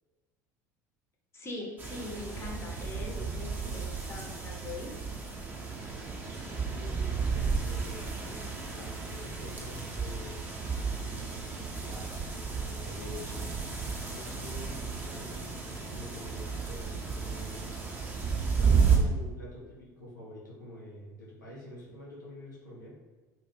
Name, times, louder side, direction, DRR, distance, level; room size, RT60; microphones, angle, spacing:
voice 1, 1.3-5.0, left 2 dB, 25° left, -1 dB, 0.6 m, -41 dB
sound 1, 1.8-19.0, right 5 dB, 20° right, 0.5 m, -32 dB
voice 2, 6.6-13.6 14.0-17.8 18.5-22.9, left 1 dB, 90° left, -6 dB, 0.6 m, -46 dB
2.2 x 2.1 x 3.0 m, 1.3 s
figure-of-eight pair, 65°, 10 cm